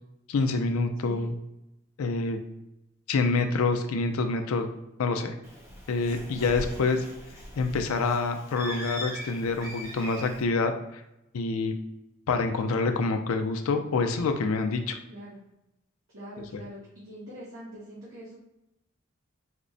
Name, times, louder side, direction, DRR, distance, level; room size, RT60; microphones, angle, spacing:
voice 1, 0.3-1.3 2.0-2.4 3.1-4.7 5.0-5.3 5.9-7.0 7.6-10.7 11.3-11.7 12.3-15.0 16.5-16.6, left 3 dB, 80° left, 6 dB, 0.4 m, -26 dB
Bird, 5.4-10.4, equal, 15° right, 0.8 m, -40 dB
voice 2, 6.7-7.1 15.1-15.4 16.1-16.8 17.0-18.4, equal, 65° right, -9 dB, 1.0 m, -44 dB
4.2 x 2.0 x 2.5 m, 0.89 s
head